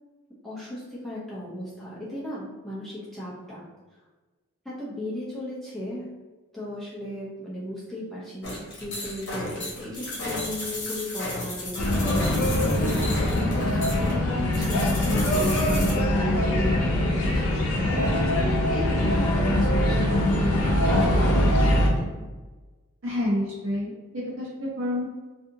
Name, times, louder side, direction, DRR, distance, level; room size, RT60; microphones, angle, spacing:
voice 1, 0.4-3.7 4.6-6.1 6.5-22.2, equal, ahead, -8 dB, 0.5 m, -36 dB
sound 1, 8.4-15.9, left 1 dB, 55° left, 1.0 m, -34 dB
sound 2, 11.8-21.9, left 1 dB, 85° left, 0.6 m, -22 dB
voice 2, 23.0-25.1, left 1 dB, 60° right, -6 dB, 0.7 m, -28 dB
2.7 x 2.5 x 2.6 m, 1.3 s
head